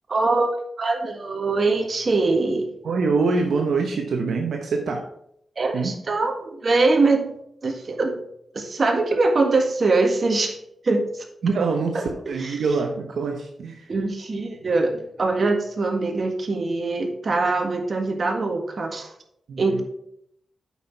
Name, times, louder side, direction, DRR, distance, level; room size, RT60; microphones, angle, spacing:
voice 1, 0.1-0.5 0.8-2.7 5.6-7.3 7.6-8.2 8.5-10.6 10.8-11.2 11.9-12.0 12.4-12.6 13.9-19.1 19.6-19.8, right 3 dB, 50° right, 3 dB, 1.6 m, -22 dB
voice 2, 2.8-5.0 5.7-5.9 11.4-13.9 19.5-19.8, right 4 dB, 80° right, 2 dB, 1.0 m, -24 dB
8.4 x 5.8 x 4.6 m, 0.74 s
cardioid pair, 65°, 0 cm